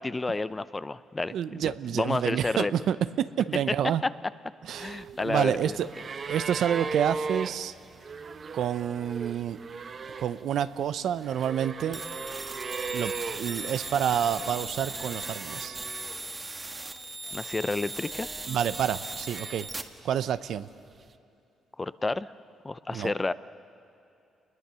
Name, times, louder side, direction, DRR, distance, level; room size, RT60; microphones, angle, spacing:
voice 1, 0.0-2.7 4.0-4.1 4.8-5.8 17.3-18.3 21.8-22.3 22.6-23.3, left 3 dB, 20° left, 16 dB, 0.6 m, -30 dB
voice 2, 1.3-3.0 3.4-4.0 4.7-5.9 6.2-7.7 8.5-9.6 10.2-12.0 12.9-13.1 13.4-15.8 18.5-19.7 20.0-20.7 22.9-23.1, right 9 dB, 70° right, 14 dB, 0.7 m, -28 dB
sound 1, 4.7-16.4 16.7-17.6 18.3-20.0 21.1-21.2, right 4 dB, 45° right, 1.0 m, -39 dB
sound 2, 11.9-19.8, right 2 dB, 20° right, 1.5 m, -38 dB
29.0 x 20.5 x 6.9 m, 2.7 s
cardioid pair, 90°, 0 cm